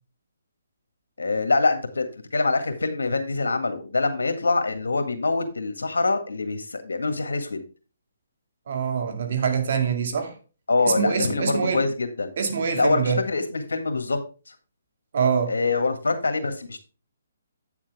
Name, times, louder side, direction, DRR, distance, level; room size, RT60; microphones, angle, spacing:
voice 1, 1.2-2.1 2.3-7.6 10.7-12.3 12.7-14.2 15.5-16.8, left 3 dB, 85° left, 1.8 m, -24 dB
voice 2, 8.7-10.4 10.8-11.8 12.4-13.2 15.1-15.5, right 6 dB, 60° right, 2.1 m, -24 dB
8.8 x 7.2 x 3.5 m
hypercardioid pair, 150°, 0 cm